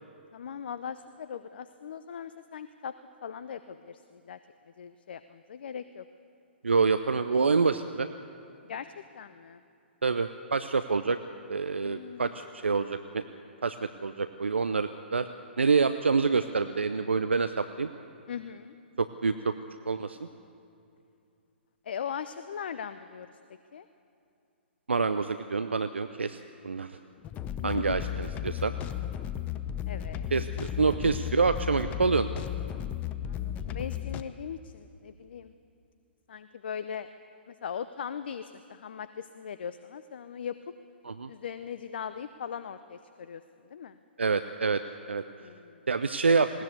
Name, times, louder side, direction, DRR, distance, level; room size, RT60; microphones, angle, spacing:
voice 1, 0.3-2.9 3.2-4.4 4.8-6.1 8.7-8.9 9.1-9.6 11.8-12.3 18.3-18.7 21.8-23.3 23.7-23.9 27.6-28.0 29.9-30.3 33.2-35.5 36.3-37.1 37.5-40.5 41.3-43.4 43.7-44.0 45.4-45.8, left 7 dB, 60° left, 12 dB, 0.6 m, -39 dB
voice 2, 6.6-8.1 10.0-11.2 11.5-13.2 13.6-13.8 14.0-15.3 15.6-17.9 19.0-19.5 19.9-20.2 24.9-26.4 26.6-26.9 27.6-28.7 30.3-32.3 41.0-41.3 44.2-44.8 45.1-45.2 45.9-46.5, right 4 dB, 75° right, 10 dB, 0.6 m, -27 dB
sound 1, 27.2-34.2, left 10 dB, 25° left, 0.7 m, -34 dB
20.5 x 18.0 x 8.2 m, 2.5 s
figure-of-eight pair, 120°, 6 cm